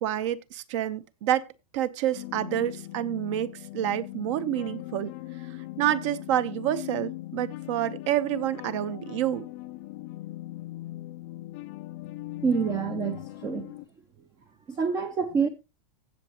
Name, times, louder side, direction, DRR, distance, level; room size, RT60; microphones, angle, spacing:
voice 1, 0.0-1.5 1.7-5.1 5.8-9.4, right 12 dB, 50° right, 0.9 m, -28 dB
sound 1, 2.1-13.9, left 17 dB, 35° left, 0.4 m, -40 dB
voice 2, 12.4-13.7 14.7-15.5, right 5 dB, 15° right, 0.5 m, -27 dB
16.5 x 6.5 x 2.9 m
supercardioid pair, 170°, 20 cm